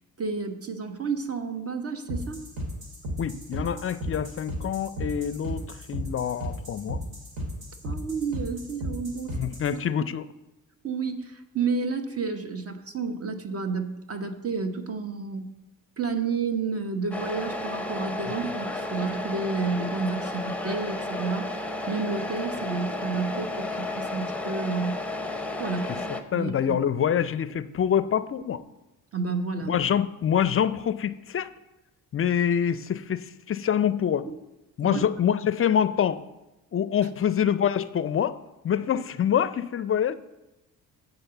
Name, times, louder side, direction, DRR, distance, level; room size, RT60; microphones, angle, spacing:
voice 1, 0.2-2.4 7.8-9.4 10.8-15.5 16.0-21.5 21.9-25.0 25.6-25.9 26.3-26.8 27.1-27.2 29.1-29.8 34.8-35.0 37.0-37.1, right 4 dB, 40° right, 7 dB, 0.9 m, -30 dB
sound 1, 2.1-9.8, equal, 70° right, 2.2 m, -35 dB
voice 2, 3.2-7.0 9.3-10.3 25.9-26.0 26.3-28.6 29.7-31.5 32.1-34.3 34.8-36.2 36.7-38.4 38.6-40.1, left 9 dB, 35° left, 15 dB, 0.4 m, -26 dB
Truck, 17.1-26.2, left 2 dB, 5° left, 0.7 m, -33 dB
8.0 x 4.0 x 6.8 m, 1.0 s
supercardioid pair, 60°, 39 cm